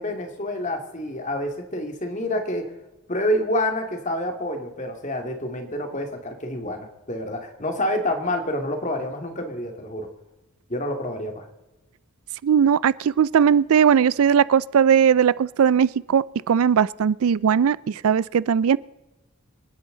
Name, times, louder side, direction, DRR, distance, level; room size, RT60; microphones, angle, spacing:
voice 1, 0.0-2.7 3.1-10.1 10.7-11.5, left 1 dB, 35° left, 2.2 m, -28 dB
voice 2, 12.4-18.8, right 7 dB, 75° right, 0.4 m, -19 dB
27.0 x 10.5 x 3.9 m
head